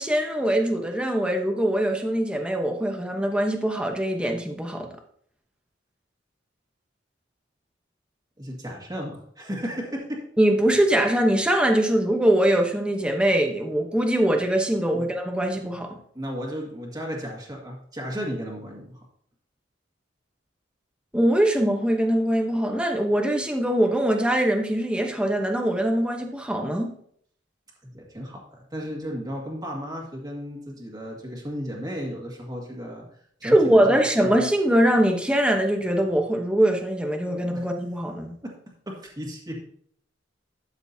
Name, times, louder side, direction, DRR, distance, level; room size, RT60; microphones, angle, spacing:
voice 1, 0.0-4.9 10.4-16.0 21.1-26.9 33.4-38.3, right 1 dB, 5° right, 3 dB, 0.9 m, -22 dB
voice 2, 8.4-10.2 14.9-15.1 16.1-19.0 27.8-33.0 33.4-34.3 38.4-38.6 38.9-39.6, equal, 20° right, -2 dB, 1.9 m, -34 dB
12.5 x 7.0 x 2.7 m, 0.62 s
head